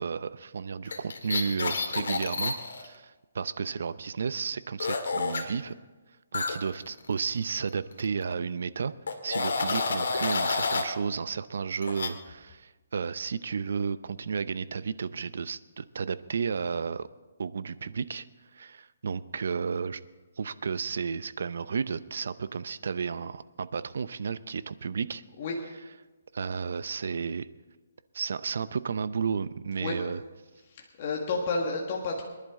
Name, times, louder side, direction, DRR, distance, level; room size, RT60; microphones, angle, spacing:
voice 1, 0.0-5.7 6.3-8.9 9.2-17.1 17.4-18.2 18.5-20.0 20.4-25.2 26.3-27.5 28.1-30.2, right 5 dB, 60° right, 15 dB, 0.6 m, -32 dB
sound 1, 0.9-2.9 4.8-5.4 6.3-7.7 8.0-8.2 9.1-10.9 11.8-12.1, left 4 dB, 70° left, 1.9 m, -29 dB
voice 2, 30.7-32.2, left 3 dB, 30° left, -1 dB, 1.5 m, -31 dB
24.5 x 11.0 x 3.7 m, 1.2 s
hypercardioid pair, 170°, 0 cm